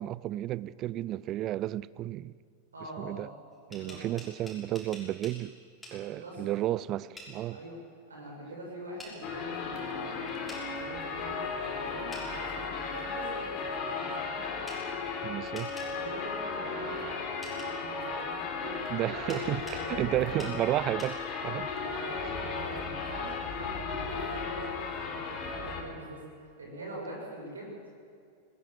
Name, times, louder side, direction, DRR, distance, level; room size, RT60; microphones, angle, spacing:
voice 1, 0.0-2.3 3.0-3.3 3.7-5.5 5.9-7.6 15.2-15.7 18.9-21.7, right 14 dB, 35° right, 0.5 m, -32 dB
voice 2, 2.7-3.3 3.6-4.0 6.0-6.5 7.5-7.8 8.1-14.5 15.9-17.2 17.5-18.8 19.2-20.6 21.8-26.2 26.6-27.8, right 1 dB, 70° right, 7.3 m, -44 dB
sound 1, 3.5-5.4 5.8-6.0 7.2-7.3 9.0-9.1 10.5-10.6 12.1-12.3 14.7-14.8 15.5-15.9 17.4-17.7 19.3-19.8 20.4-20.5 21.0-21.1, left 1 dB, 5° left, 6.3 m, -46 dB
sound 2, 9.2-25.8, left 4 dB, 35° left, 3.4 m, -35 dB
21.0 x 19.0 x 7.7 m
figure-of-eight pair, 90°, 0 cm